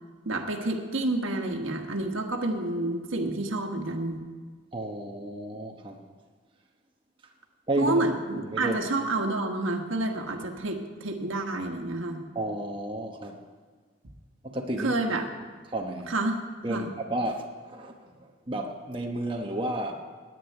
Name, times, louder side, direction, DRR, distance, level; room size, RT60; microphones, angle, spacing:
voice 1, 0.2-4.3 7.8-12.2 14.8-15.3 16.1-16.4 16.7-16.9, right 2 dB, 90° right, 4 dB, 1.4 m, -29 dB
voice 2, 4.7-6.0 7.7-8.0 8.5-8.8 12.3-13.4 14.4-14.9 15.7-16.2 16.6-20.0, right 1 dB, 25° right, 1 dB, 1.0 m, -32 dB
10.0 x 9.2 x 9.3 m, 1.5 s
head